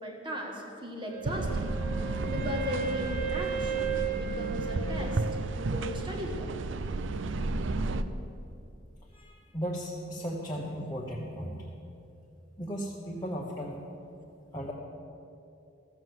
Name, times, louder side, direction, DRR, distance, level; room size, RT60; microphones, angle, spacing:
voice 1, 0.0-1.7 2.0-5.2 5.5-6.5, equal, 25° right, 1 dB, 1.5 m, -38 dB
Wind instrument woodwind instrument, 1.1-5.9, right 5 dB, 45° right, 1.0 m, -35 dB
sound 1, 1.2-8.0, right 3 dB, 75° right, 0.5 m, -32 dB
voice 2, 9.1-11.6 12.6-13.8 14.5-14.7, equal, 20° left, -5 dB, 1.1 m, -36 dB
14.0 x 7.4 x 7.8 m, 2.7 s
head